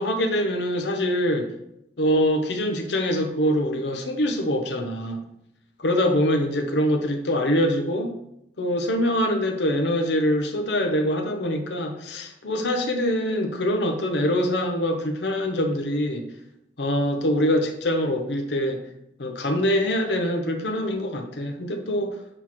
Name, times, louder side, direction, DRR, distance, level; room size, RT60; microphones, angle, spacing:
voice 1, 0.0-1.5 2.0-5.2 5.8-8.1 8.6-16.2 16.8-18.8 19.2-22.1, equal, 70° left, 4 dB, 0.8 m, -24 dB
8.0 x 3.1 x 5.8 m, 0.81 s
head